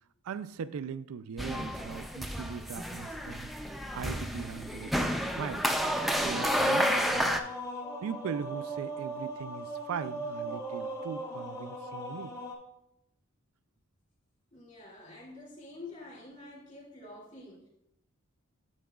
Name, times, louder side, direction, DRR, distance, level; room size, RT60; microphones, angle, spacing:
voice 1, 0.2-3.5 3.9-5.7 6.2-7.4 8.0-12.4, right 6 dB, 85° right, 0.3 m, -40 dB
sound 1, 1.4-7.4, equal, ahead, 0.4 m, -30 dB
sound 2, 5.9-12.5, right 1 dB, 15° left, 0.9 m, -38 dB
voice 2, 14.5-17.7, left 2 dB, 40° left, 2.6 m, -48 dB
8.4 x 7.0 x 2.3 m
head